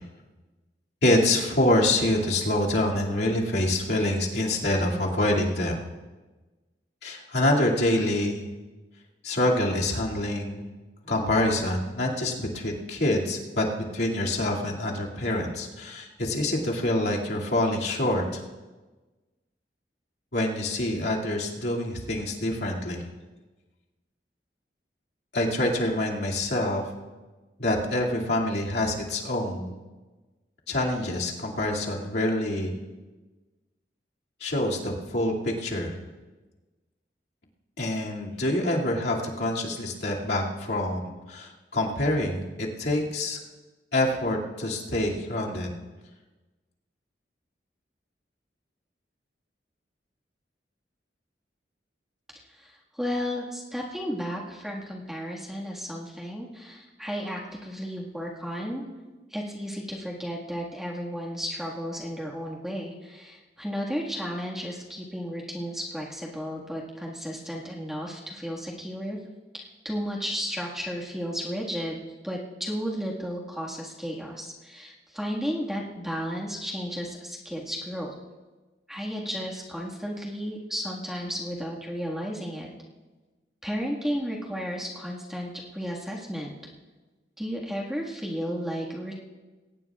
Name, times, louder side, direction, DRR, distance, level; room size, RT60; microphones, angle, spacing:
voice 1, 1.0-5.8 7.0-8.5 9.2-10.7 11.0-13.7 13.9-18.4 20.3-23.1 25.3-26.9 27.6-29.8 30.7-32.7 34.4-36.0 37.8-43.4 43.9-45.7, left 1 dB, 70° left, -3 dB, 2.4 m, -26 dB
voice 2, 52.5-58.8 59.3-69.2 69.5-78.2 78.9-82.7 83.6-86.5 87.4-89.2, equal, ahead, -3 dB, 1.7 m, -33 dB
22.0 x 18.5 x 2.4 m, 1.2 s
head